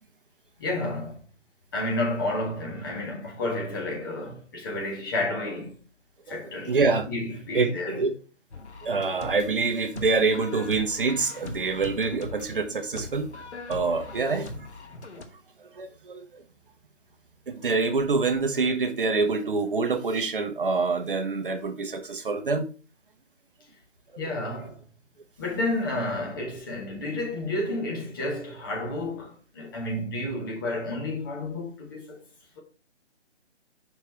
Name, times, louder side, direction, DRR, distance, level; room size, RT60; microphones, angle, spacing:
voice 1, 0.6-1.2 1.7-5.8 6.3-6.7 7.1-8.0 24.2-24.8 25.4-32.2, left 2 dB, 20° left, 1.0 m, -31 dB
voice 2, 6.7-7.1 7.5-8.1 8.8-13.3 13.7-14.7 15.7-16.4 17.5-22.7 24.1-24.2, right 4 dB, 45° right, 0.9 m, -26 dB
sound 1, 8.5-15.2, left 3 dB, 65° left, 1.2 m, -41 dB
5.8 x 4.5 x 4.2 m
figure-of-eight pair, 150°, 36 cm